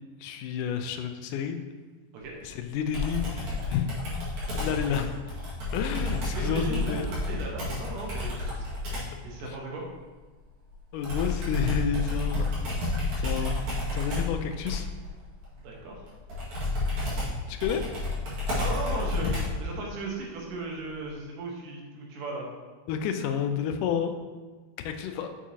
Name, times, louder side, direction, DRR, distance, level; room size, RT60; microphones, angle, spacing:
voice 1, 0.2-1.6 2.4-3.9 4.5-5.2 5.7-7.1 10.9-12.5 13.2-14.9 17.5-17.8 19.2-19.4 22.9-24.1 24.9-25.3, left 8 dB, 85° left, 7 dB, 2.1 m, -30 dB
Computer keyboard, 2.9-9.2 11.0-19.7, left 2 dB, 60° right, 3.2 m, -30 dB
voice 2, 6.2-8.7 9.2-9.8 15.5-16.1 18.6-19.3 19.6-22.4, right 3 dB, 90° right, -2 dB, 2.9 m, -36 dB
7.2 x 7.0 x 2.8 m, 1.4 s
omnidirectional pair, 3.7 m